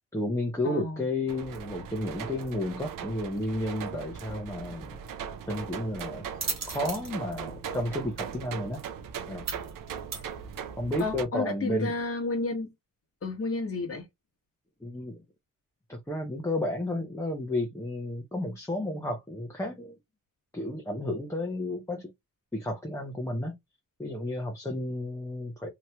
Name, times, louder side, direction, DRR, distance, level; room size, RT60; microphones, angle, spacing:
voice 1, 0.1-5.0 5.5-6.3 6.7-8.8 9.3-9.5 10.8-11.9 14.8-15.2 15.9-20.0 20.5-22.1 22.5-23.5 24.0-25.7, left 1 dB, 10° left, 0.7 m, -32 dB
voice 2, 0.6-1.1 11.0-12.7 13.2-14.1, left 3 dB, 45° left, 1.1 m, -31 dB
sound 1, 1.3-11.3, right 7 dB, 75° right, 0.6 m, -39 dB
sound 2, 4.6-11.0, right 4 dB, 55° right, 1.0 m, -41 dB
2.9 x 2.8 x 2.2 m
cardioid pair, 85°, 33 cm